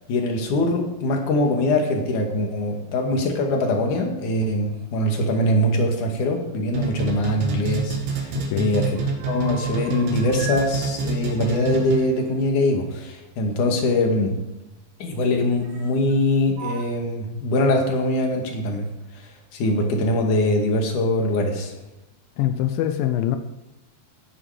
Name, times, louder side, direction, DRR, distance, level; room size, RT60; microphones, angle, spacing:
voice 1, 0.1-9.0 9.2-14.3 15.0-18.9 19.1-21.7, left 1 dB, 50° left, 2 dB, 3.2 m, -22 dB
sound 1, 6.7-12.3, right 4 dB, 90° right, 4.5 m, -27 dB
sound 2, 7.7-8.6 8.9-10.7 11.0-13.5 14.5-14.6 15.6-16.2 16.5-16.8, right 5 dB, 70° right, 3.2 m, -39 dB
voice 2, 8.4-8.7 22.4-23.4, left 12 dB, 85° left, 8 dB, 2.0 m, -24 dB
18.0 x 10.5 x 5.0 m, 1.0 s
omnidirectional pair, 5.1 m